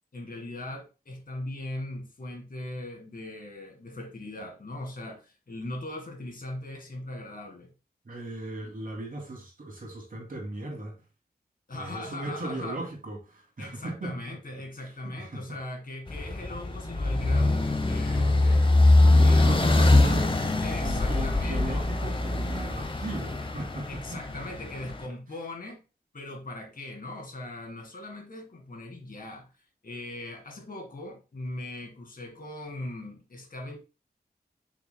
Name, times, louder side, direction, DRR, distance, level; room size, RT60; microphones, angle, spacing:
voice 1, 0.1-7.7 11.7-12.8 13.6-18.8 19.2-19.7 20.6-22.1 23.9-25.8 26.1-29.5 29.8-33.8, left 1 dB, 55° left, 1.8 m, -39 dB
voice 2, 8.0-11.0 11.7-14.4 14.8-15.4 19.0-20.4 20.8-24.4, right 2 dB, 55° right, 2.6 m, -37 dB
sound 1, 16.1-25.0, left 2 dB, 30° left, 0.8 m, -23 dB
6.7 x 6.3 x 2.2 m
wide cardioid pair, 105°, 17 cm